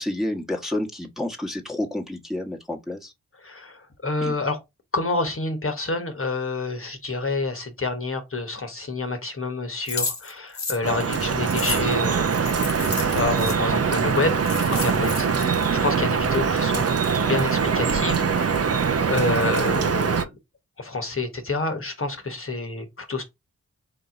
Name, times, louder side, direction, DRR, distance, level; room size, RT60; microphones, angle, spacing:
voice 1, 0.0-3.1 4.2-4.3 15.2-15.5, left 1 dB, ahead, 1.4 m, -30 dB
voice 2, 3.4-4.6 4.9-12.6 13.1-14.4 14.7-16.9 17.3-20.3 20.8-23.2, left 3 dB, 45° left, 1.3 m, -28 dB
sound 1, 9.9-13.6 14.1-14.2 14.4-15.5, left 4 dB, 60° left, 1.3 m, -32 dB
Drip, 10.8-20.2, right 6 dB, 50° right, 0.7 m, -23 dB
3.9 x 2.9 x 3.8 m
cardioid pair, 40°, 32 cm